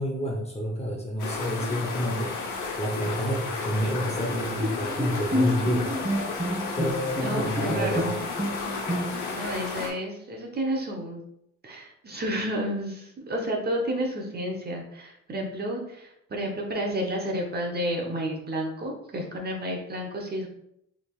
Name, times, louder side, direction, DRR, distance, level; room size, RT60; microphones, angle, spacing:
voice 1, 0.0-2.3 2.8-6.0 6.8-8.2, equal, 20° left, 0 dB, 0.8 m, -29 dB
sound 1, 1.2-9.9, left 4 dB, 85° left, 0.9 m, -33 dB
Bowed string instrument, 4.6-9.4, equal, 15° right, 1.4 m, -30 dB
voice 2, 7.2-8.1 9.3-11.2 11.6-20.5, equal, 30° right, 0 dB, 0.9 m, -31 dB
4.1 x 3.5 x 2.4 m, 0.77 s
cardioid pair, 90°, 30 cm